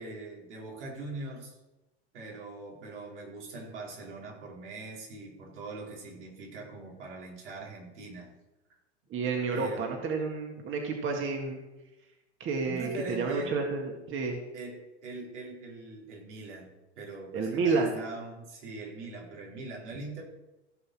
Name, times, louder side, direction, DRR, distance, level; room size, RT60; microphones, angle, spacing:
voice 1, 0.0-1.6 2.1-8.3 9.5-10.0 12.6-13.6 14.5-20.2, right 3 dB, 80° right, -3 dB, 4.6 m, -42 dB
voice 2, 9.1-11.6 12.4-14.4 17.3-18.0, right 4 dB, 35° right, 2 dB, 2.0 m, -30 dB
15.5 x 5.6 x 6.3 m, 1.0 s
hypercardioid pair, 105°, 34 cm